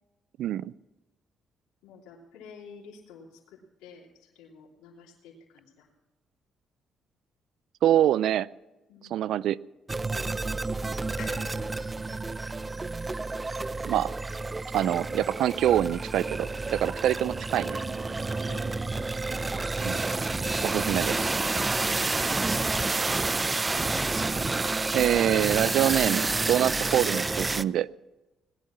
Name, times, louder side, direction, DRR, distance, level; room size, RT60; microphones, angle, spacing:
voice 1, 0.4-0.7 7.8-8.5 9.1-9.6 13.9-14.1 14.7-17.8 19.8-20.0 20.6-21.3 24.9-27.9, right 11 dB, 75° right, 20 dB, 0.4 m, -25 dB
voice 2, 1.8-5.9 8.9-9.4 10.1-11.0 18.5-19.0, left 5 dB, 85° left, -3 dB, 3.1 m, -51 dB
sound 1, 9.9-27.6, right 3 dB, 25° right, 0.5 m, -29 dB
sound 2, 11.2-14.7 15.0-15.1 15.3-15.4, left 7 dB, 65° left, 2.7 m, -49 dB
sound 3, 16.2-21.4, right 4 dB, 50° right, 1.7 m, -42 dB
19.5 x 10.5 x 6.0 m, 1.1 s
supercardioid pair, 60°, 0 cm